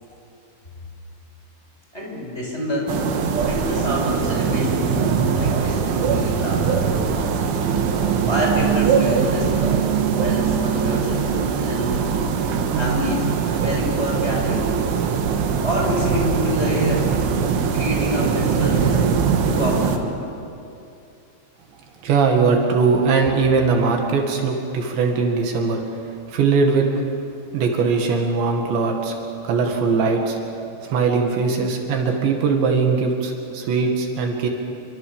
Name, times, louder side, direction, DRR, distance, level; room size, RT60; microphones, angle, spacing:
voice 1, 1.9-2.9 3.4-5.0 5.3-7.6 8.3-11.3 11.6-12.1 12.7-14.7 15.6-17.1 17.7-19.1 19.4-20.1, left 1 dB, 15° left, -3 dB, 6.3 m, -27 dB
sound 1, 2.9-20.0, right 6 dB, 90° right, 4.2 m, -21 dB
sound 2, 7.2-7.3 7.8-8.1 8.6-8.9 9.4-9.8 10.2-10.6 11.1-11.4 11.9-12.3 12.8-13.1 13.6-13.9 14.4-14.8 15.2-15.6 16.1-16.4 16.9-17.3 17.8-18.1 18.6-18.9, right 5 dB, 55° right, 7.5 m, -32 dB
voice 2, 22.0-25.8 26.3-26.9 27.5-29.2 29.4-30.4 30.8-34.5, right 4 dB, 75° right, 2 dB, 4.3 m, -20 dB
28.5 x 24.5 x 7.2 m, 2.7 s
omnidirectional pair, 5.3 m